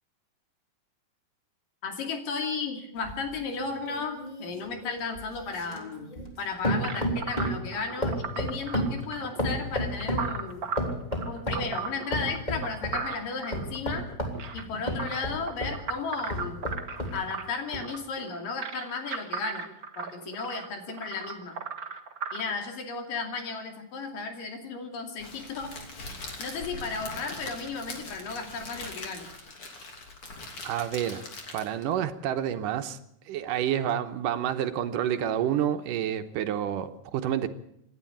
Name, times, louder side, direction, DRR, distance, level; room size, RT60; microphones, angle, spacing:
voice 1, 1.8-6.1 6.4-10.6 11.3-14.0 14.5-16.7 17.1-19.7 20.0-21.6 22.3-25.7 26.4-29.3, left 4 dB, 75° left, 4 dB, 4.3 m, -34 dB
sound 1, 3.0-6.4 6.6-7.7 8.0-10.3 10.8-11.7 12.1-13.0 13.5-15.8 16.3-17.2 17.7-17.8, equal, 15° left, 3.2 m, -31 dB
sound 2, 6.8-22.4, right 5 dB, 60° right, 0.9 m, -37 dB
Crackle, 25.2-31.9, left 2 dB, 40° left, 3.7 m, -41 dB
voice 2, 30.6-31.2 31.5-33.0 33.3-37.5, right 10 dB, 75° right, 9 dB, 2.6 m, -29 dB
27.5 x 11.0 x 8.7 m, 0.74 s
omnidirectional pair, 3.9 m